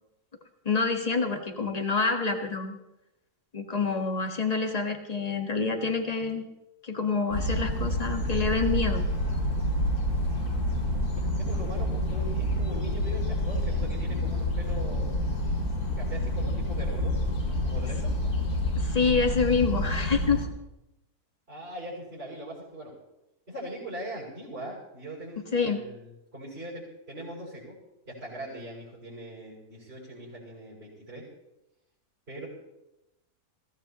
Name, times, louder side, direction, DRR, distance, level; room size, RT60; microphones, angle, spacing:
voice 1, 0.6-2.8 3.5-6.4 6.8-9.0 18.8-20.5 25.5-25.8, left 4 dB, 25° left, 4 dB, 1.4 m, -27 dB
sound 1, 7.3-20.5, left 1 dB, 65° left, 2.9 m, -28 dB
voice 2, 11.1-15.2 16.0-17.2 17.6-18.1 21.5-22.9 23.5-27.8 28.1-31.2 32.3-32.5, right 1 dB, 40° right, -8 dB, 6.4 m, -41 dB
21.5 x 16.5 x 3.0 m, 0.92 s
omnidirectional pair, 1.7 m